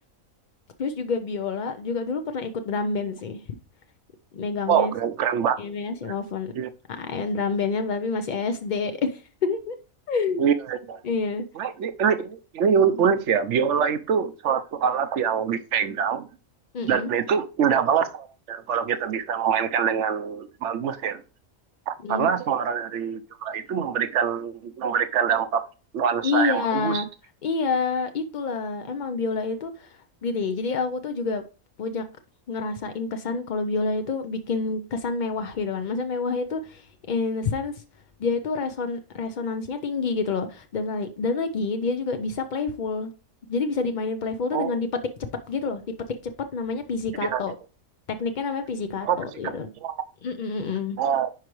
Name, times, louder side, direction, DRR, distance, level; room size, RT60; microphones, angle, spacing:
voice 1, 0.8-3.4 4.3-4.9 5.6-6.5 7.0-9.8 10.1-10.5 11.0-11.5 16.7-17.1 22.0-22.3 26.2-27.1 27.4-31.4 31.8-32.1 32.5-37.8 38.2-43.1 43.5-44.9 45.5-45.8 46.5-47.5 48.2-49.7 50.2-51.0, left 4 dB, 60° left, 0.5 m, -28 dB
voice 2, 4.7-5.7 6.0-6.1 6.5-6.7 10.4-11.0 11.6-16.3 16.9-21.2 21.9-25.6 25.9-27.0 44.5-44.8 47.3-47.4 49.0-49.2 49.4-50.0 51.0-51.3, right 7 dB, 60° right, 0.9 m, -24 dB
10.5 x 4.7 x 3.1 m
omnidirectional pair, 1.5 m